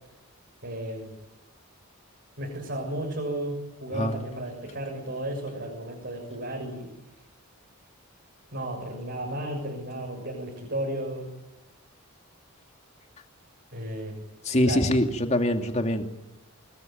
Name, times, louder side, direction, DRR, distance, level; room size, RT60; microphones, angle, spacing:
voice 1, 0.6-1.2 2.4-6.9 8.5-11.3 13.7-14.2 14.7-14.8, right 1 dB, 50° right, -1 dB, 6.9 m, -33 dB
voice 2, 14.4-16.0, left 1 dB, 30° left, 5 dB, 2.5 m, -24 dB
26.0 x 22.5 x 9.2 m, 1.0 s
head